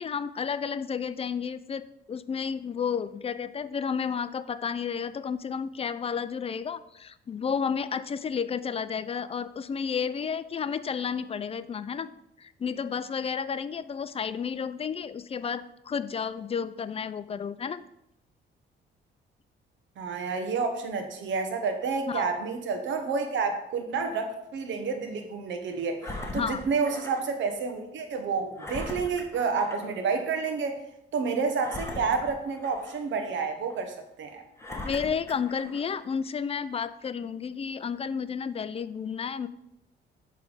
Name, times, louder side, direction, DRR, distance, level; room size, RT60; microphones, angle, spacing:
voice 1, 0.0-12.1 12.4-17.8 22.1-22.3 26.3-26.6 34.8-39.5, left 6 dB, 30° left, 14 dB, 0.3 m, -32 dB
voice 2, 20.0-30.8 31.1-34.4, right 5 dB, 70° right, 6 dB, 1.0 m, -29 dB
Engine, 26.0-27.3 27.7-27.8 28.6-30.0 30.4-30.5 31.6-33.1 33.7-33.8 34.6-36.0 36.7-36.8, left 1 dB, 15° left, 1.2 m, -40 dB
7.0 x 3.4 x 4.9 m, 0.82 s
cardioid pair, 90°, 20 cm